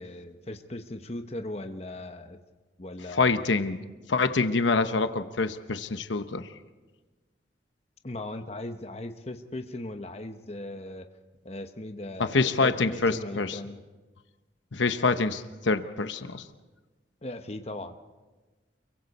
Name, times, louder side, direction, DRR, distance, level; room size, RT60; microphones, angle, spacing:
voice 1, 0.0-2.4 2.8-3.4 8.0-11.1 11.4-13.8 17.2-18.0, left 1 dB, 35° left, 6 dB, 1.0 m, -38 dB
voice 2, 3.2-3.8 4.1-6.5 12.2-13.6 14.7-16.4, left 3 dB, 85° left, 9 dB, 0.9 m, -26 dB
29.0 x 23.5 x 4.2 m, 1.2 s
head